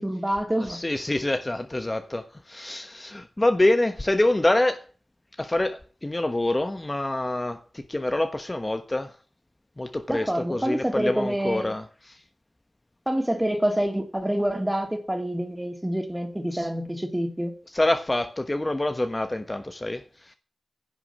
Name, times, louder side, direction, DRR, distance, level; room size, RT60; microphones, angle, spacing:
voice 1, 0.0-0.8 10.1-11.7 13.1-17.5, right 1 dB, 10° right, 3.0 m, -27 dB
voice 2, 0.7-4.8 5.4-9.2 9.8-12.2 16.5-16.7 17.7-20.3, left 1 dB, 25° left, 1.2 m, -26 dB
10.5 x 6.9 x 7.1 m
cardioid pair, 55°, 0 cm